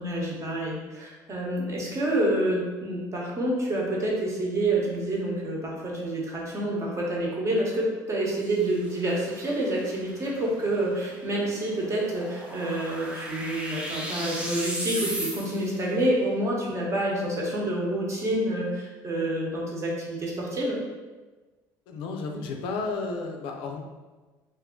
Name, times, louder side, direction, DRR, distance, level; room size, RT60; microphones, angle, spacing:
voice 1, 0.0-20.8, right 1 dB, 35° right, -3 dB, 0.9 m, -28 dB
sound 1, 8.4-15.8, right 1 dB, 10° right, 0.5 m, -37 dB
voice 2, 21.9-23.8, left 3 dB, 75° left, 2 dB, 0.4 m, -32 dB
2.5 x 2.3 x 3.6 m, 1.3 s
supercardioid pair, 100°, 9 cm